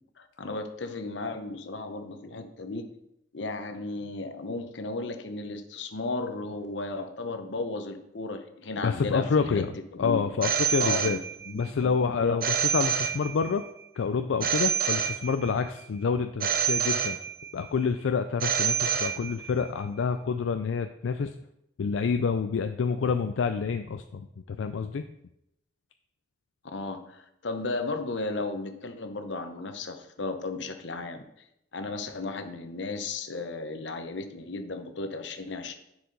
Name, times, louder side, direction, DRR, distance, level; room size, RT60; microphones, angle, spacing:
voice 1, 0.2-2.9 3.3-9.6 10.0-10.3 10.8-11.2 11.5-11.9 12.2-12.4 26.7-31.2 31.7-35.7, left 3 dB, 75° left, 7 dB, 0.8 m, -34 dB
voice 2, 8.8-11.2 11.5-13.6 14.0-17.2 17.5-21.3 21.8-25.1, left 5 dB, 90° left, 8 dB, 0.4 m, -28 dB
Telephone, 10.4-11.7 12.4-13.7 14.4-15.7 16.4-17.7 18.4-19.7, right 8 dB, 50° right, 0.6 m, -28 dB
9.9 x 4.8 x 4.0 m, 0.81 s
head